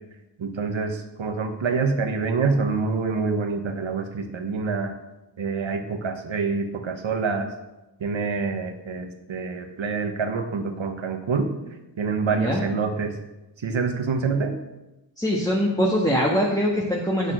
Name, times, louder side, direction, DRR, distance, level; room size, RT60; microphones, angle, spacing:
voice 1, 0.4-4.9 5.4-7.5 8.0-11.5 12.0-13.2 13.6-14.6, right 4 dB, 85° right, 6 dB, 1.3 m, -26 dB
voice 2, 12.3-12.6 15.2-17.3, equal, 10° left, -3 dB, 1.5 m, -23 dB
8.7 x 6.6 x 6.2 m, 0.99 s
wide cardioid pair, 60°, 45 cm